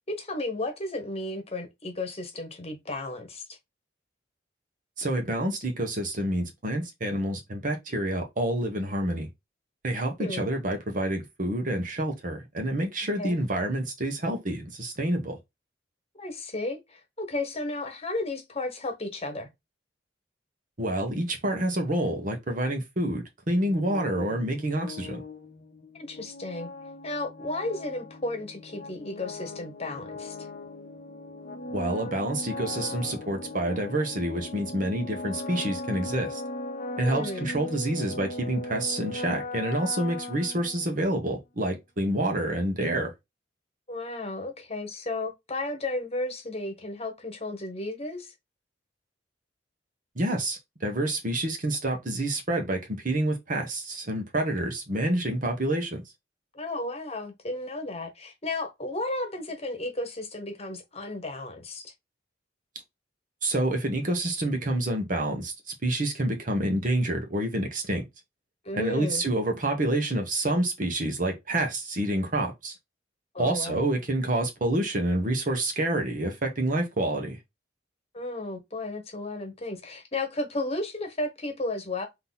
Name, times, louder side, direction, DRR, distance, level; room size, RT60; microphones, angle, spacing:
voice 1, 0.1-3.4 10.2-10.5 13.2-13.4 16.1-19.5 25.9-26.7 27.0-30.5 37.0-37.5 43.9-48.3 56.5-61.9 68.6-69.2 73.3-73.8 78.1-82.1, left 2 dB, 35° left, 1.1 m, -33 dB
voice 2, 5.0-9.3 9.8-15.4 20.8-25.2 31.7-36.4 37.0-43.1 50.2-52.8 53.0-56.0 63.4-65.5 65.8-68.0 68.7-72.7 73.4-77.4, right 1 dB, 50° right, 1.2 m, -28 dB
sound 1, 23.5-41.1, left 2 dB, 50° left, 0.7 m, -39 dB
3.8 x 2.9 x 3.9 m
head